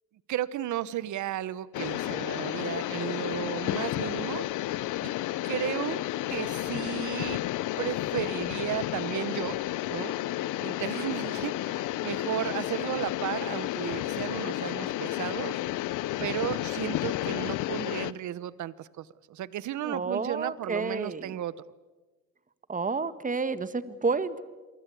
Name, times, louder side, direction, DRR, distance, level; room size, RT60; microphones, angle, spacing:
voice 1, 0.3-4.5 5.0-5.1 5.4-6.0 6.3-7.4 7.8-9.6 9.9-10.1 10.6-15.6 16.2-21.5, right 12 dB, 75° right, 19 dB, 1.1 m, -34 dB
sound 1, 1.7-18.1, left 15 dB, 85° left, 0.8 m, -32 dB
voice 2, 19.8-21.4 22.7-24.4, right 4 dB, 25° right, 14 dB, 1.6 m, -30 dB
28.0 x 23.5 x 8.4 m, 1.2 s
cardioid pair, 90°, 30 cm